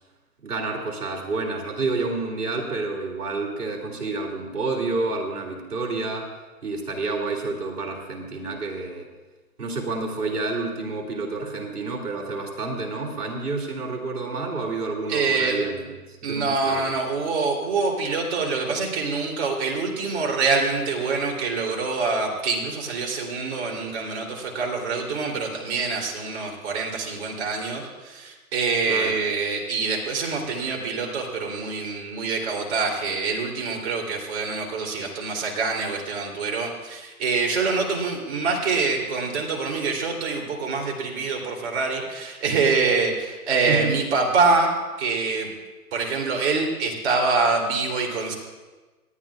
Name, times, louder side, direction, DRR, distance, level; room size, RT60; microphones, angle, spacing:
voice 1, 0.4-6.3 6.6-9.1 9.6-16.9 28.9-29.2 43.7-43.9, right 3 dB, 85° right, 2 dB, 2.9 m, -29 dB
voice 2, 15.1-15.6 16.2-44.7 45.0-45.5 45.9-48.3, right 4 dB, 45° right, 0 dB, 3.3 m, -25 dB
30.0 x 10.5 x 2.4 m, 1.2 s
hypercardioid pair, 145°, 45 cm